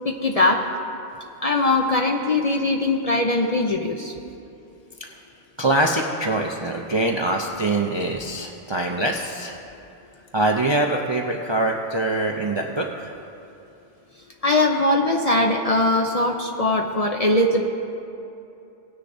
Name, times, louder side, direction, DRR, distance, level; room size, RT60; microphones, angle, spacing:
voice 1, 0.0-0.7 1.4-4.1 14.4-17.7, left 2 dB, 45° left, 2 dB, 0.5 m, -21 dB
voice 2, 5.6-9.6 10.3-13.1, right 2 dB, 40° right, 1 dB, 0.4 m, -24 dB
18.5 x 9.9 x 2.6 m, 2.7 s
omnidirectional pair, 1.2 m